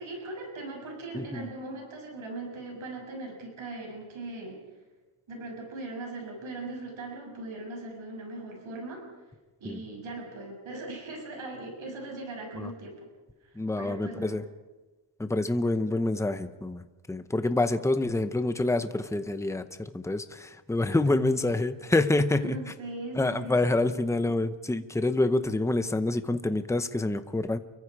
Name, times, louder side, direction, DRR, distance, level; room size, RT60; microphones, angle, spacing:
voice 1, 0.0-4.6 5.3-9.0 9.6-13.1 13.4-14.4 21.1-21.2 22.3-23.8, right 2 dB, 70° right, 1 dB, 6.6 m, -39 dB
voice 2, 13.6-14.4 15.2-16.8 17.1-22.4 23.2-27.6, left 2 dB, 5° left, 10 dB, 0.8 m, -27 dB
29.5 x 23.5 x 4.8 m, 1.2 s
wide cardioid pair, 160°, 49 cm